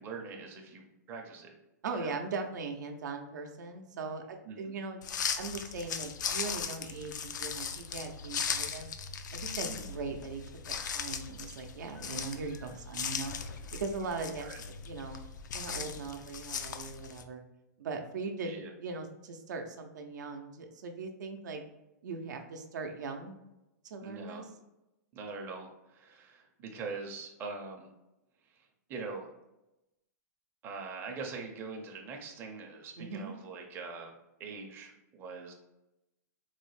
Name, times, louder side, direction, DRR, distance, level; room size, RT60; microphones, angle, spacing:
voice 1, 0.0-1.5 1.9-2.2 4.5-4.8 9.6-10.0 14.4-14.6 18.4-18.7 24.0-24.4 25.1-27.9 28.5-28.6 28.9-29.3 30.6-34.1 34.4-35.5, right 4 dB, 25° right, 1 dB, 0.5 m, -43 dB
voice 2, 1.8-5.0 5.4-8.9 9.3-10.4 10.7-13.3 13.8-15.2 15.5-17.4 17.8-21.6 22.0-23.4 23.8-24.4 33.0-33.3, right 4 dB, 75° right, 4 dB, 0.6 m, -39 dB
sound 1, 5.0-17.2, left 6 dB, 85° left, 0.4 m, -38 dB
3.9 x 2.1 x 3.1 m, 0.93 s
hypercardioid pair, 140°, 10 cm